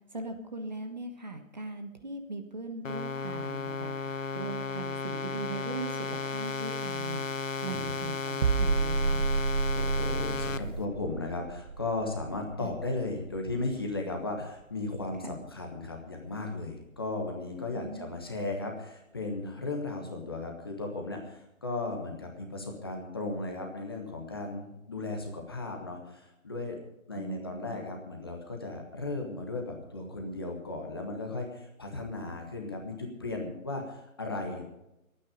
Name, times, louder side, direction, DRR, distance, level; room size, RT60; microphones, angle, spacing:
voice 1, 0.1-7.2 7.6-9.2 12.6-12.7 15.2-15.4 17.7-18.1 27.1-27.9, right 3 dB, 30° right, 5 dB, 1.3 m, -40 dB
sound 1, 2.8-10.6, left 4 dB, 65° left, 1.1 m, -34 dB
voice 2, 7.6-7.9 9.7-26.8 27.1-34.6, left 2 dB, 15° left, 1 dB, 1.3 m, -36 dB
sound 2, 8.4-14.1 14.4-14.6, right 4 dB, 60° right, 0.8 m, -31 dB
22.5 x 9.4 x 5.1 m, 0.88 s
figure-of-eight pair, 170°, 42 cm